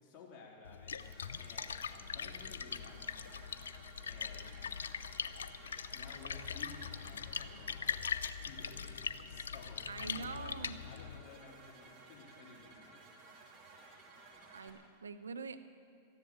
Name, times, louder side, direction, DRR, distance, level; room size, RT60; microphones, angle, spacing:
voice 1, 0.0-1.0 1.4-3.4 4.0-4.7 5.9-8.1 8.4-13.1, left 4 dB, 40° left, -2 dB, 3.4 m, -55 dB
Splash splatter, 0.6-11.2, left 7 dB, 80° left, 0.5 m, -41 dB
sound 1, 1.0-14.7, right 3 dB, 40° right, 2.9 m, -58 dB
sound 2, 2.1-7.9, left 4 dB, 70° right, 2.3 m, -65 dB
voice 2, 9.9-10.8 14.5-15.6, right 4 dB, 85° right, 10 dB, 0.7 m, -44 dB
14.0 x 10.5 x 8.7 m, 2.2 s
hypercardioid pair, 100°, 0 cm